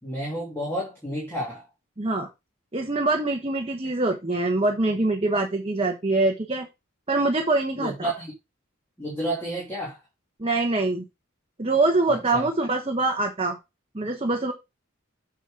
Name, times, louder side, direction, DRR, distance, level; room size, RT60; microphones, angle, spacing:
voice 1, 0.0-1.6 7.8-8.3 9.0-10.0 12.1-12.5, right 1 dB, 10° left, 3.0 m, -31 dB
voice 2, 2.0-2.3 2.7-6.7 7.1-8.1 10.4-11.0 11.6-13.6 13.9-14.5, right 2 dB, 25° right, 1.0 m, -24 dB
8.1 x 5.9 x 3.8 m
head